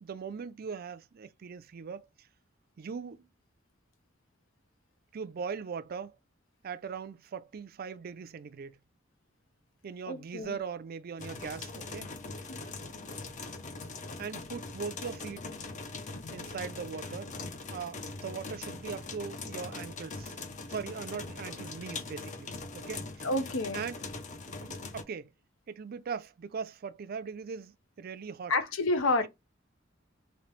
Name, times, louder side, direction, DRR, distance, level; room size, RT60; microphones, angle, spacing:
voice 1, 0.0-2.3 2.8-3.3 5.1-6.2 6.6-8.8 9.8-12.1 14.2-15.5 16.3-17.3 17.7-20.4 20.7-23.3 23.7-24.0 24.6-25.3 25.7-28.5, right 6 dB, 50° right, 0.4 m, -40 dB
voice 2, 10.1-10.6 12.5-12.6 16.1-16.3 23.2-23.8 28.5-29.3, left 2 dB, 80° left, 0.7 m, -29 dB
sound 1, 11.2-25.0, left 3 dB, 40° left, 0.6 m, -41 dB
3.1 x 2.9 x 3.1 m
head